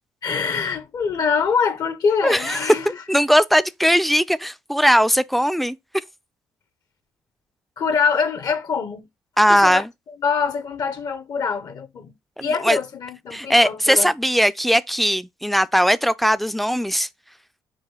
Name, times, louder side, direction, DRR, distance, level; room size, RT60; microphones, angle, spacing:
voice 1, 0.2-3.0 7.8-9.1 9.5-9.8 10.2-12.1 12.4-14.1, left 5 dB, 55° left, 0.7 m, -24 dB
voice 2, 2.2-2.7 3.1-5.8 9.4-9.9 12.4-12.8 13.3-17.1, equal, ahead, 0.3 m, -19 dB
4.8 x 2.3 x 4.5 m
supercardioid pair, 70°, 8 cm